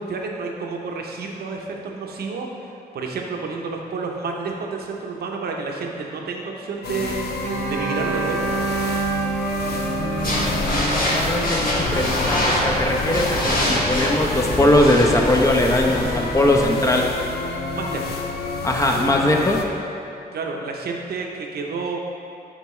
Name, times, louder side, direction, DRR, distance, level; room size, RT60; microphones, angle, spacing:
voice 1, 0.0-7.3 7.7-8.6 17.7-18.2 20.3-22.0, right 4 dB, 75° right, 1 dB, 0.8 m, -30 dB
sound 1, 6.8-19.7, left 4 dB, 80° left, 0.5 m, -29 dB
Bowed string instrument, 7.4-11.5, right 5 dB, 45° right, 0.8 m, -27 dB
voice 2, 10.0-17.1 18.6-19.6, left 1 dB, 20° left, 1 dB, 0.8 m, -20 dB
sound 2, 10.2-16.7, left 1 dB, 65° left, 1.5 m, -24 dB
9.1 x 3.5 x 3.2 m, 2.6 s
cardioid pair, 70°, 16 cm